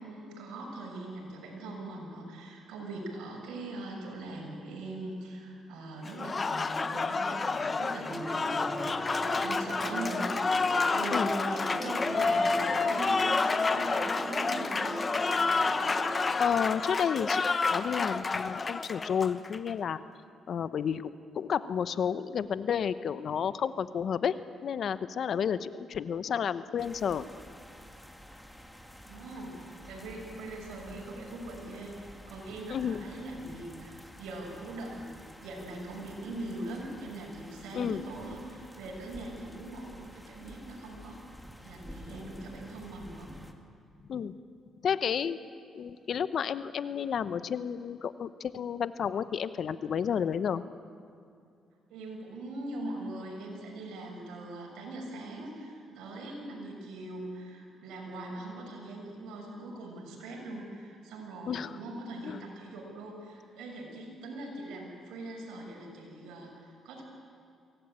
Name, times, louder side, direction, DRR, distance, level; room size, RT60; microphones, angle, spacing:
voice 1, 0.0-15.1 29.1-41.2 41.6-43.3 51.9-67.0, right 2 dB, 90° right, 0 dB, 6.3 m, -41 dB
Applause, 6.0-19.7, left 4 dB, 30° left, 1.0 m, -29 dB
sound 1, 8.1-16.3, right 1 dB, 15° right, 3.4 m, -39 dB
voice 2, 16.4-20.0 20.5-27.2 32.7-33.0 37.7-38.0 44.1-44.3 44.8-45.4 45.7-50.6 61.5-61.7 62.2-62.4, left 7 dB, 60° left, 13 dB, 0.9 m, -31 dB
sound 2, 26.8-43.5, equal, 5° left, 2.0 m, -50 dB
23.0 x 17.5 x 8.9 m, 2.4 s
cardioid pair, 90°, 0 cm